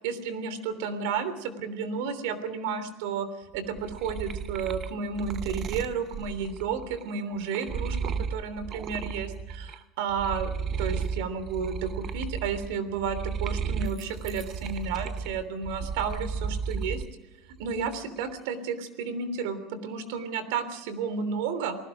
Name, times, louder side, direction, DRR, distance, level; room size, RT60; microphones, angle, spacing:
voice 1, 0.0-3.3 3.5-17.0 17.6-21.8, right 6 dB, 80° right, 12 dB, 3.3 m, -32 dB
sound 1, 3.5-9.8 10.1-17.1 17.5-18.2, right 6 dB, 35° right, 0.7 m, -34 dB
29.5 x 19.5 x 5.0 m, 1.1 s
cardioid pair, 150°, 0 cm